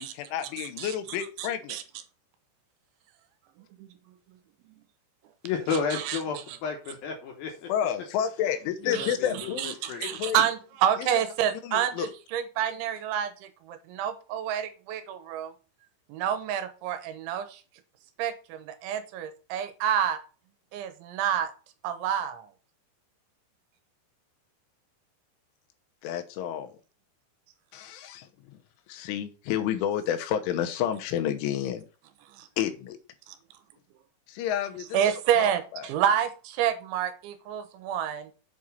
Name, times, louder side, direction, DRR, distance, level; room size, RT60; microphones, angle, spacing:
voice 1, 0.0-1.8 7.7-10.5 11.0-11.1 11.6-12.1 26.0-26.7 27.7-28.6 28.9-31.8 32.6-33.0 34.3-35.0 35.4-35.9, left 10 dB, 90° left, 7 dB, 3.4 m, -30 dB
voice 2, 0.6-0.9 1.4-1.8 3.6-3.9 5.9-6.2 8.9-9.1 9.6-15.5 16.1-17.6 18.2-20.2 20.7-21.5 21.8-22.5 32.3-32.5 33.3-33.4 34.9-38.3, right 9 dB, 80° right, 10 dB, 3.2 m, -29 dB
voice 3, 5.4-7.7 8.8-10.0, left 5 dB, 70° left, 3 dB, 2.3 m, -32 dB
8.0 x 4.9 x 5.5 m, 0.35 s
omnidirectional pair, 5.5 m